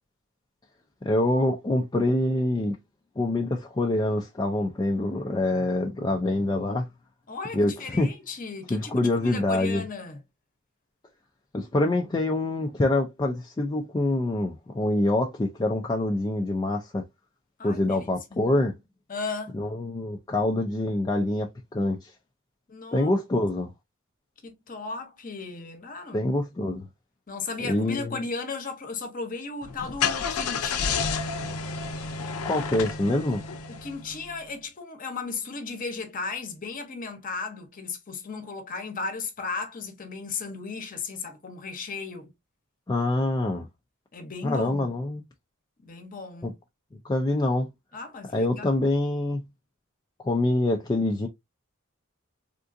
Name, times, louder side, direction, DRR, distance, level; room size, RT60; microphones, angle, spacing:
voice 1, 1.0-2.8 3.2-6.9 7.5-8.1 8.7-9.8 11.5-17.0 17.6-18.7 19.5-22.1 22.9-23.7 26.1-26.9 27.7-28.2 32.4-33.4 42.9-43.7 44.4-45.2 46.4-46.5 47.0-47.7 48.3-49.4 50.2-51.3, left 2 dB, 20° left, 0.3 m, -25 dB
voice 2, 7.3-10.2 17.6-18.4 19.1-19.6 22.7-23.1 24.4-26.3 27.3-31.0 33.7-42.3 44.1-44.9 45.8-46.5 47.9-48.8, left 4 dB, 40° left, 0.8 m, -35 dB
Car / Engine starting, 29.6-34.3, left 5 dB, 80° left, 0.6 m, -30 dB
3.6 x 2.4 x 2.5 m
head